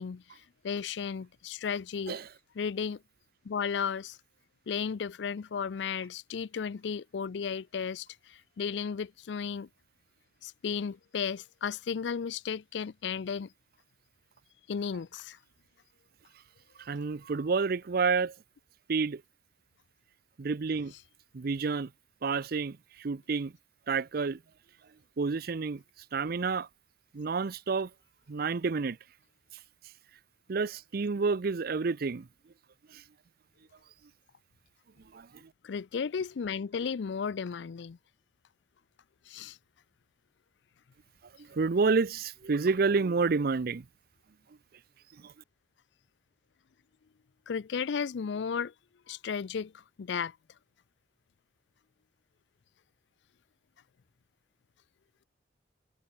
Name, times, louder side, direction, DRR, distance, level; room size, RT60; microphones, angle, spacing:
voice 1, 0.0-2.2 2.6-3.0 3.4-4.2 4.7-9.7 10.4-13.5 14.7-15.4 35.6-38.0 39.3-39.6 47.5-48.7 49.1-50.4, left 6 dB, 75° left, 0.4 m, -34 dB
voice 2, 16.8-18.3 18.9-19.2 20.4-20.9 21.3-21.9 22.2-23.5 23.9-24.4 25.2-25.8 26.1-26.7 27.1-27.9 28.3-29.0 30.5-32.3 32.9-33.0 35.1-35.5 41.4-43.8 45.2-45.3, right 4 dB, 55° right, 0.5 m, -29 dB
head